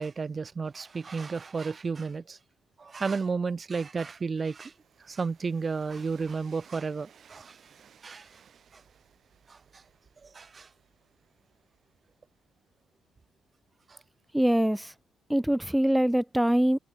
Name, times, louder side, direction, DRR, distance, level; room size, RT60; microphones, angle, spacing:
voice 1, 0.0-2.4 2.8-4.7 5.0-7.6 8.0-8.4 8.7-8.8 9.5-9.8 10.2-10.7 13.9-14.0, right 4 dB, 35° right, 1.2 m, -33 dB
Train, 3.3-13.1, right 8 dB, 55° right, 7.1 m, -61 dB
voice 2, 14.3-14.9 15.3-16.8, right 1 dB, 5° right, 0.9 m, -24 dB
cardioid pair, 90°, 0 cm